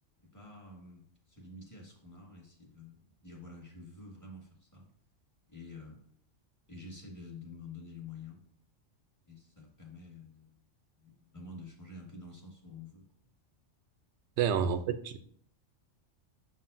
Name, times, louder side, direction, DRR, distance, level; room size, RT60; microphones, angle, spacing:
voice 1, 0.2-4.9 5.5-6.0 6.7-8.4 9.3-10.6 11.0-13.0, left 3 dB, 15° left, -2 dB, 1.7 m, -49 dB
voice 2, 14.4-15.2, right 8 dB, 70° right, 10 dB, 0.8 m, -29 dB
7.3 x 6.1 x 2.6 m, 0.63 s
omnidirectional pair, 1.3 m